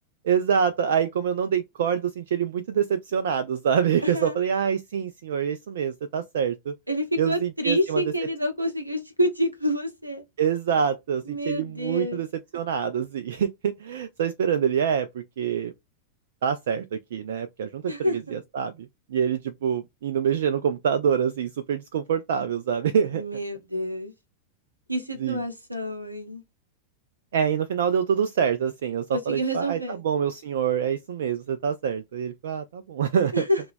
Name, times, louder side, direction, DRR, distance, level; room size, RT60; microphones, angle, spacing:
voice 1, 0.2-6.7 7.2-8.0 10.4-12.3 12.5-15.7 16.4-23.2 25.2-25.4 27.3-29.8 30.0-33.4, right 7 dB, 60° right, 0.3 m, -26 dB
voice 2, 4.0-4.4 6.9-10.2 11.2-12.2 17.9-18.3 23.1-24.1 24.9-26.4 29.1-30.0 33.3-33.6, equal, 85° right, 0.8 m, -28 dB
2.8 x 2.2 x 2.5 m
figure-of-eight pair, 90°, 0 cm